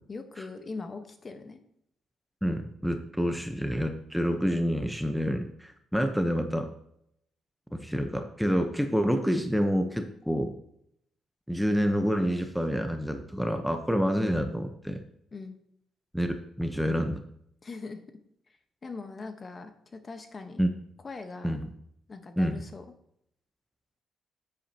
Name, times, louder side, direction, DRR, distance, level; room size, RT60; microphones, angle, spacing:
voice 1, 0.1-1.6 15.3-15.6 17.6-18.0 18.8-20.6 21.0-21.6 22.1-22.8, left 3 dB, 35° left, 7 dB, 1.2 m, -41 dB
voice 2, 2.4-6.7 7.7-10.5 11.5-15.0 16.1-17.2 20.6-20.7 21.4-21.7 22.4-22.6, equal, ahead, 5 dB, 0.9 m, -28 dB
10.0 x 8.8 x 2.9 m, 0.72 s
cardioid pair, 90°, 0 cm